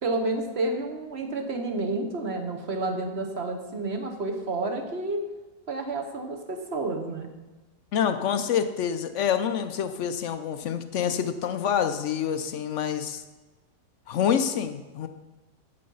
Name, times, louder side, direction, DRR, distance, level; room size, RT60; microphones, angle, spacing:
voice 1, 0.0-5.3 5.7-7.3, right 2 dB, 45° right, 5 dB, 1.1 m, -30 dB
voice 2, 7.9-13.2 14.1-15.1, left 8 dB, 70° left, 9 dB, 0.7 m, -27 dB
8.4 x 7.8 x 5.4 m, 1.2 s
omnidirectional pair, 1.8 m